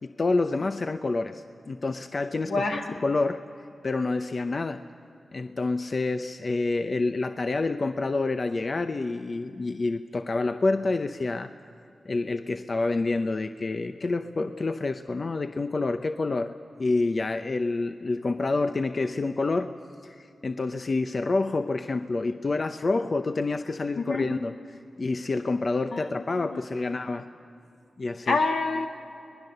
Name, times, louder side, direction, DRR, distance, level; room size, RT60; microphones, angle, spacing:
voice 1, 0.0-4.8 5.3-11.5 12.1-19.7 20.0-27.2 28.0-28.4, left 3 dB, 50° left, 8 dB, 0.7 m, -28 dB
voice 2, 2.4-3.0 24.0-24.3 25.9-27.0 28.3-28.9, left 3 dB, 85° left, 1 dB, 2.2 m, -28 dB
25.0 x 19.5 x 6.7 m, 2.7 s
cardioid pair, 65°, 0 cm